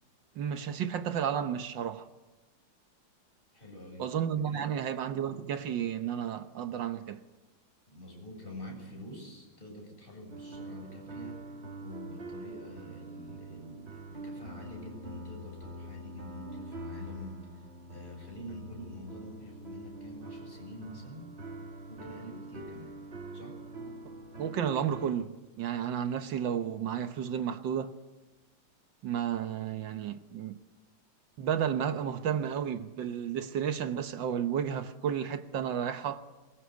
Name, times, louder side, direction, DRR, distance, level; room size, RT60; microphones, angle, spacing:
voice 1, 0.4-2.1 4.0-7.2 24.4-28.0 29.0-30.6 31.4-36.2, right 8 dB, 80° right, 1.7 m, -32 dB
voice 2, 3.5-4.1 4.5-4.7 7.9-11.4 11.8-21.3 21.9-22.9 23.3-23.6, equal, 25° left, 7.8 m, -46 dB
sound 1, 10.3-25.1, right 1 dB, 35° right, 1.7 m, -44 dB
23.0 x 22.0 x 8.2 m
omnidirectional pair, 2.0 m